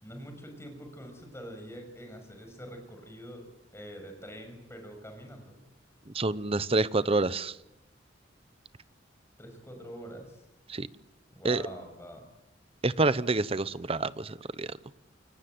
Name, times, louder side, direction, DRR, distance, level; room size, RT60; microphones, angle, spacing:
voice 1, 0.0-3.4 3.7-5.6 9.4-10.4 11.3-12.2, equal, 15° left, 5 dB, 6.6 m, -45 dB
voice 2, 6.1-7.6 10.7-10.9 11.4-11.6 12.8-14.8, right 3 dB, 30° right, 16 dB, 0.9 m, -28 dB
29.0 x 22.5 x 7.9 m, 0.92 s
head